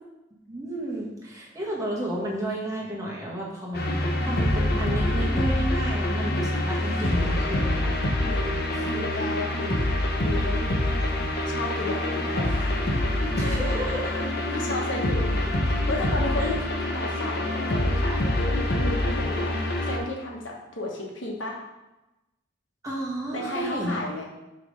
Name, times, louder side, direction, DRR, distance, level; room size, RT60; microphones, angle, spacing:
voice 1, 0.5-8.0 8.7-8.9 13.4-14.2 16.4-16.5 22.8-24.0, right 1 dB, 15° right, -4 dB, 1.5 m, -32 dB
sound 1, 3.7-20.0, left 1 dB, 55° left, 0.8 m, -26 dB
voice 2, 8.3-9.9 10.2-10.7 11.5-12.7 14.5-16.6 16.9-19.5 19.8-21.6 23.3-24.2, left 2 dB, 80° left, -1 dB, 1.3 m, -33 dB
6.3 x 3.4 x 5.0 m, 0.99 s
head